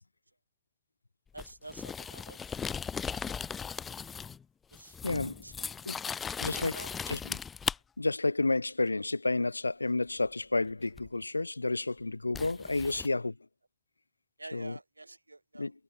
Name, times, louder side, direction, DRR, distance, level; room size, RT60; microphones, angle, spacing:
voice 1, 1.3-2.4 3.2-3.3 3.7-3.8 4.7-5.0 5.4-5.7 6.3-7.0 12.9-13.0 14.4-15.7, right 2 dB, 85° right, 7.4 m, -48 dB
sound 1, 1.4-4.4 4.7-7.8 11.0-11.1 12.3-13.1, left 6 dB, 20° left, 0.4 m, -37 dB
voice 2, 5.0-5.4 5.8-6.0 6.4-6.7 7.1-7.4 8.0-13.3 14.5-14.8 15.6-15.7, left 3 dB, 80° left, 1.3 m, -30 dB
figure-of-eight pair, 90°, 0 cm